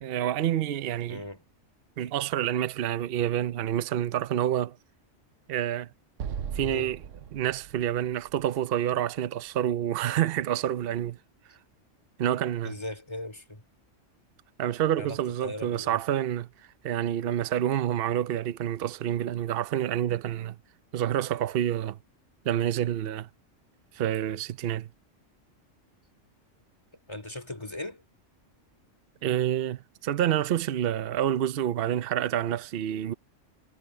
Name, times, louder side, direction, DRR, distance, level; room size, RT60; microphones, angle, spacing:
voice 1, 0.0-1.2 2.0-4.8 5.5-5.9 6.5-7.0 7.3-11.2 12.2-12.7 14.6-16.5 16.8-20.6 20.9-22.0 22.4-23.3 23.9-24.9 29.2-33.1, right 11 dB, 55° right, 0.8 m, -28 dB
voice 2, 1.1-1.4 6.6-6.9 12.6-13.6 15.0-15.2 15.4-16.0 27.1-28.0, left 1 dB, 20° left, 3.8 m, -38 dB
Explosion, 6.2-9.5, right 7 dB, 80° right, 1.2 m, -39 dB
omnidirectional pair, 1.3 m